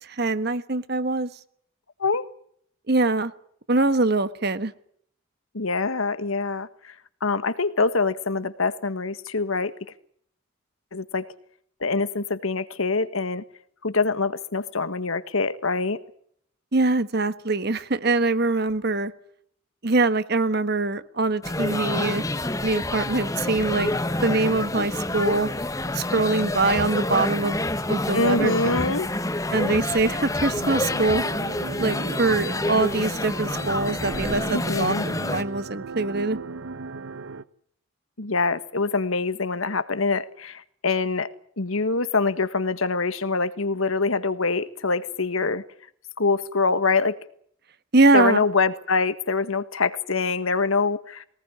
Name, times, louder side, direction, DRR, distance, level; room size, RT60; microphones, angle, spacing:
voice 1, 0.0-1.3 2.9-3.3 3.7-4.7 16.7-19.1 19.8-22.2 22.6-23.9 24.2-25.5 25.9-27.6 27.9-28.5 29.5-31.2 31.8-36.4 47.9-48.5, right 3 dB, 50° right, 13 dB, 1.3 m, -23 dB
voice 2, 5.5-6.9 7.2-9.9 10.9-11.3 11.8-13.4 13.8-16.0 28.1-29.1 34.5-35.0 38.2-41.3 41.6-45.6 46.2-47.2 48.1-51.2, left 4 dB, 80° left, 12 dB, 1.6 m, -24 dB
sound 1, 21.4-35.4, left 2 dB, 15° left, 1.2 m, -28 dB
sound 2, 30.5-37.4, right 3 dB, 80° right, 1.0 m, -37 dB
22.5 x 19.0 x 9.8 m, 0.68 s
head